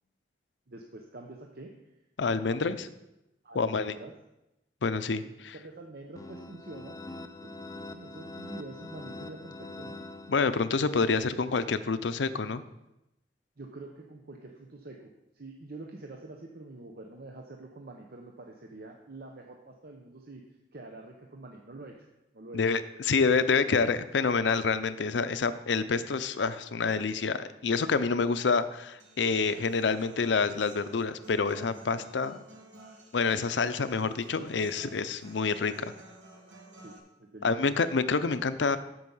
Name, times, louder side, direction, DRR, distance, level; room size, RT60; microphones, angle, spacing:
voice 1, 0.7-1.9 2.5-2.8 3.4-4.1 5.5-7.0 7.4-10.0 13.6-20.4 20.7-22.0 22.3-22.6 36.8-37.7, right 2 dB, 55° right, 2 dB, 0.9 m, -46 dB
voice 2, 2.2-2.8 3.5-3.9 4.8-5.5 10.3-12.6 22.5-32.4 33.1-35.7 37.4-38.8, left 4 dB, 85° left, 12 dB, 0.6 m, -27 dB
sound 1, 6.2-10.9, left 2 dB, 20° left, 0.5 m, -44 dB
Human voice / Acoustic guitar, 29.0-37.0, right 2 dB, 85° right, 1.7 m, -52 dB
7.9 x 7.5 x 5.5 m, 0.91 s
head